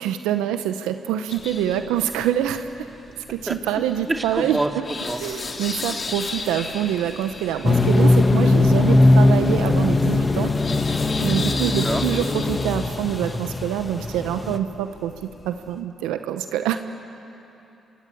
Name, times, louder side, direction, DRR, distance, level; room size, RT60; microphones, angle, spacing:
voice 1, 0.0-2.7 3.3-4.6 5.2-10.5 11.2-15.1 15.4-16.8, right 10 dB, 90° right, 9 dB, 0.9 m, -25 dB
sound 1, 1.3-15.8, left 3 dB, 45° left, 3.1 m, -36 dB
voice 2, 3.5-5.4 11.6-12.0, right 2 dB, 20° right, 3 dB, 3.0 m, -28 dB
sound 2, 7.6-14.6, left 2 dB, 25° left, 1.5 m, -19 dB
27.5 x 24.0 x 8.4 m, 3.0 s
supercardioid pair, 60°, 0 cm